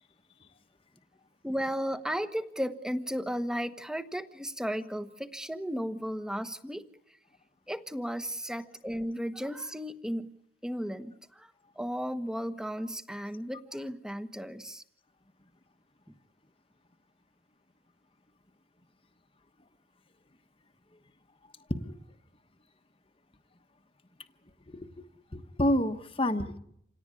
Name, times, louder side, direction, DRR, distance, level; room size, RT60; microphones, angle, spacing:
voice 1, 1.4-6.8 7.7-10.3 10.6-14.8, equal, 5° right, 10 dB, 1.3 m, -35 dB
voice 2, 24.7-25.1 25.3-26.6, left 1 dB, 30° left, 7 dB, 1.3 m, -29 dB
27.5 x 18.0 x 9.8 m, 0.75 s
head